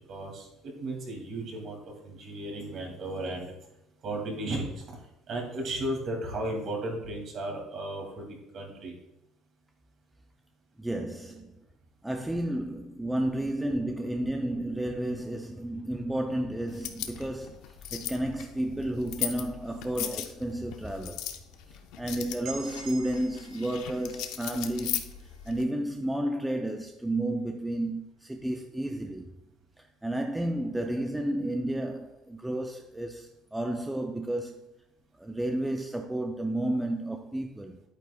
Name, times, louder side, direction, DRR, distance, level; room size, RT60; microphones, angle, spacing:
voice 1, 0.1-3.5 4.0-5.0 5.3-9.0, right 1 dB, 40° right, 2.2 m, -35 dB
voice 2, 10.8-11.6 12.0-21.3 21.7-29.3 29.8-34.7 35.2-37.8, right 1 dB, 5° right, 0.4 m, -32 dB
sound 1, 16.7-25.6, left 11 dB, 70° left, 0.7 m, -38 dB
sound 2, 22.4-26.3, right 4 dB, 60° right, 3.1 m, -47 dB
10.5 x 8.8 x 2.2 m
cardioid pair, 175°, 0 cm